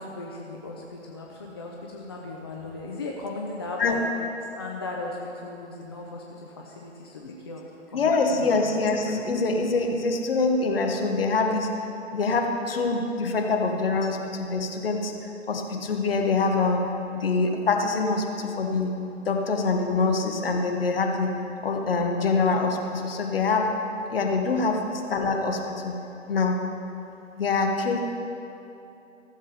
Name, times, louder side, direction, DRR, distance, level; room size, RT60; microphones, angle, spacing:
voice 1, 0.0-4.0 4.6-7.6 7.9-8.6 24.2-24.8, left 2 dB, 20° left, -1 dB, 0.5 m, -37 dB
voice 2, 7.9-11.8 12.1-15.1 15.5-16.8 17.1-18.9 19.2-21.3 21.6-23.7 24.1-25.9 26.3-26.6 27.4-28.0, left 3 dB, 50° left, 3 dB, 1.4 m, -25 dB
14.5 x 7.4 x 5.1 m, 2.8 s
figure-of-eight pair, 135°, 38 cm